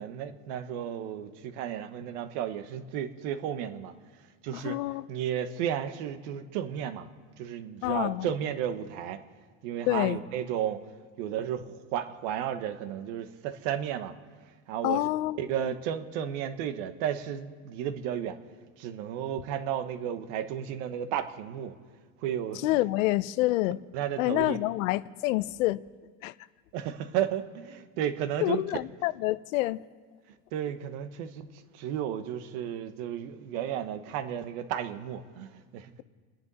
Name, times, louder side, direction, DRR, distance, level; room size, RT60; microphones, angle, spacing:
voice 1, 0.0-3.9 4.4-4.8 5.1-7.1 7.4-9.2 9.6-10.8 11.2-14.1 14.7-15.1 15.4-18.4 18.8-21.7 22.2-22.7 23.9-24.6 26.7-28.6 30.5-31.5 31.7-35.9, right 10 dB, 65° right, 1.3 m, -33 dB
voice 2, 4.6-5.0 7.8-8.3 9.9-10.2 14.8-15.4 22.6-23.8 24.2-25.8 26.2-26.3 28.4-29.8, left 17 dB, 90° left, 0.7 m, -27 dB
29.5 x 10.5 x 4.1 m
cardioid pair, 155°, 39 cm